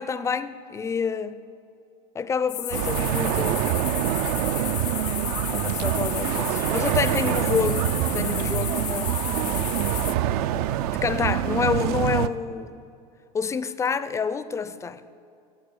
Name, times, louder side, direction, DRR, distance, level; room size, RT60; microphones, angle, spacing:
voice 1, 0.0-1.3 2.1-3.7 5.5-9.7 10.9-12.9 13.3-15.0, left 6 dB, 15° left, 0.4 m, -28 dB
sound 1, 2.5-10.1, left 14 dB, 85° left, 0.4 m, -33 dB
sound 2, 2.7-12.3, right 12 dB, 65° right, 0.4 m, -25 dB
8.7 x 7.1 x 6.5 m
hypercardioid pair, 100°, 20 cm